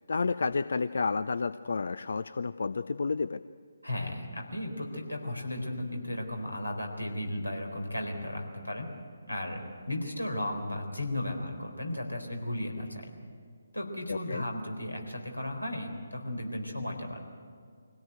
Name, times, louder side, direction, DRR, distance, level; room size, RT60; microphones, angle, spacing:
voice 1, 0.1-3.4 14.1-14.4, left 4 dB, 55° left, 14 dB, 0.5 m, -30 dB
voice 2, 3.8-8.9 9.3-13.1 13.7-17.2, left 1 dB, 90° left, 3 dB, 4.1 m, -35 dB
24.0 x 17.0 x 8.0 m, 2.2 s
figure-of-eight pair, 145°, 0 cm